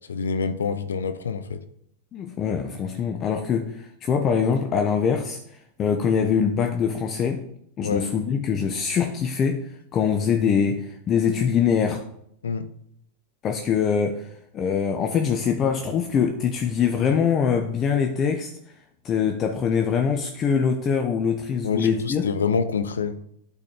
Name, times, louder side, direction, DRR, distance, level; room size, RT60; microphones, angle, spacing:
voice 1, 0.1-1.6 7.8-8.1 12.4-12.7 21.6-23.2, left 5 dB, 85° left, 0.6 m, -26 dB
voice 2, 2.1-7.4 7.8-12.0 13.4-18.5 19.0-22.2, left 7 dB, 35° left, 0.7 m, -23 dB
8.8 x 4.1 x 4.4 m
hypercardioid pair, 100°, 0 cm